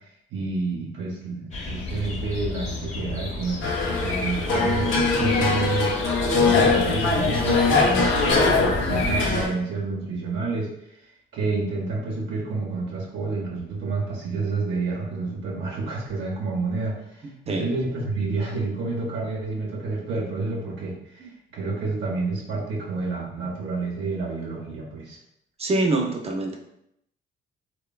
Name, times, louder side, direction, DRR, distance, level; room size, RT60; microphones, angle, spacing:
voice 1, 0.3-4.9 5.2-6.0 6.3-11.0 11.3-25.2, right 3 dB, 70° right, -4 dB, 0.7 m, -29 dB
sound 1, 1.5-9.4, left 2 dB, 35° left, 0.6 m, -31 dB
sound 2, 3.6-9.5, left 3 dB, 85° left, 0.5 m, -22 dB
voice 2, 25.6-26.6, right 2 dB, 30° right, 2 dB, 0.5 m, -24 dB
3.0 x 2.2 x 2.2 m, 0.78 s
cardioid pair, 90°, 20 cm